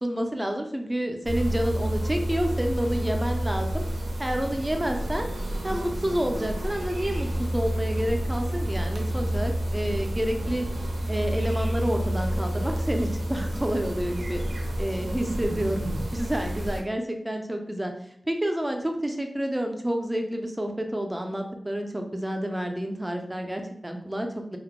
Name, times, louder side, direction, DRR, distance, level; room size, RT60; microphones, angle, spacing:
voice 1, 0.0-3.8 4.2-5.3 5.6-10.7 11.1-15.9 16.1-17.9 18.3-24.6, equal, 15° right, 4 dB, 0.4 m, -29 dB
sound 1, 1.2-16.8, right 1 dB, 80° right, 0.4 m, -29 dB
2.2 x 2.1 x 2.8 m, 0.69 s
wide cardioid pair, 80°, 0 cm